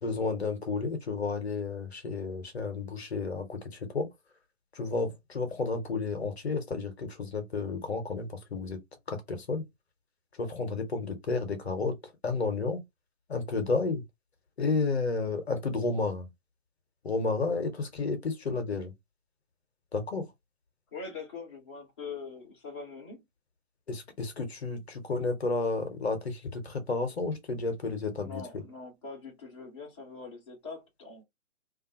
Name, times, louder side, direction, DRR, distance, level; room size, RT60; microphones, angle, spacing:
voice 1, 0.0-4.1 4.7-8.8 9.1-9.7 10.4-12.8 13.3-14.0 14.6-16.3 17.0-18.9 19.9-20.3 23.9-28.6, left 3 dB, 50° left, 0.8 m, -31 dB
voice 2, 20.9-23.2 28.2-31.2, left 4 dB, 20° left, 0.7 m, -43 dB
2.5 x 2.4 x 2.6 m
figure-of-eight pair, 135°, 41 cm